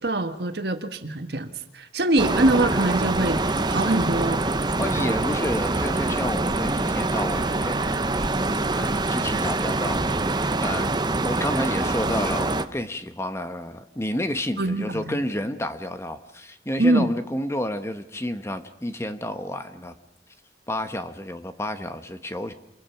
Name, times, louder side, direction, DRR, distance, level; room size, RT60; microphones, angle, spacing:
voice 1, 0.0-3.4 3.7-4.4 5.0-5.2 14.6-15.2 16.8-17.1, right 2 dB, 65° right, 7 dB, 1.4 m, -23 dB
sound 1, 2.2-12.6, right 2 dB, 25° right, 0.9 m, -25 dB
voice 2, 4.8-8.0 8.7-19.9 20.7-22.5, left 1 dB, 15° left, 9 dB, 1.1 m, -30 dB
27.5 x 23.0 x 5.8 m, 0.78 s
head